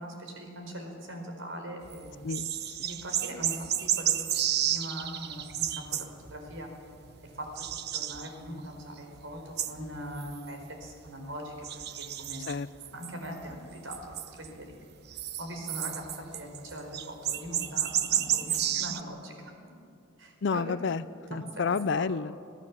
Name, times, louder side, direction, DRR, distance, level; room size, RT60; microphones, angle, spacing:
voice 1, 0.0-2.2 2.8-6.7 7.2-11.7 11.9-12.4 12.9-14.7 15.4-19.5 20.2-20.7 21.5-22.1, equal, 75° right, 3 dB, 4.6 m, -41 dB
sound 1, 1.8-6.6 7.0-8.8 9.1-11.1 11.6-13.6 13.9-14.7 15.1-19.0, right 11 dB, 55° right, 0.9 m, -32 dB
voice 2, 2.2-2.8 12.5-12.7 20.4-21.0 21.3-22.3, left 5 dB, 60° left, 15 dB, 0.5 m, -30 dB
26.0 x 17.0 x 7.4 m, 2.5 s
head